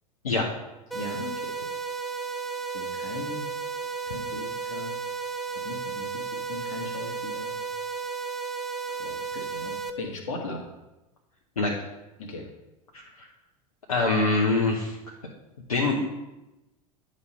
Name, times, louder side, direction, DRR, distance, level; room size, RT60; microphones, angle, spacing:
voice 1, 0.9-1.6 2.7-3.5 4.1-4.9 5.6-7.5 9.0-10.6 12.2-12.5, left 3 dB, 60° left, 2 dB, 1.4 m, -38 dB
sound 1, 0.9-9.9, right 5 dB, ahead, 0.7 m, -33 dB
voice 2, 13.9-15.0 15.7-16.0, left 3 dB, 75° left, -2 dB, 0.9 m, -24 dB
9.6 x 3.2 x 5.5 m, 1.0 s
figure-of-eight pair, 75°, 18 cm